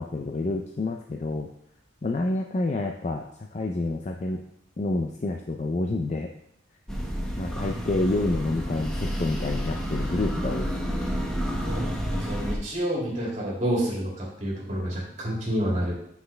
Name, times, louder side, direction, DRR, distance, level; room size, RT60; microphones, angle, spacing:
voice 1, 0.0-1.5 2.0-4.4 4.8-6.3 7.4-10.7, left 2 dB, 35° left, 3 dB, 0.4 m, -28 dB
sound 1, 6.9-12.6, equal, 5° left, 0.8 m, -30 dB
voice 2, 11.6-15.9, equal, 40° right, -4 dB, 2.3 m, -29 dB
7.9 x 5.7 x 3.3 m, 0.70 s
head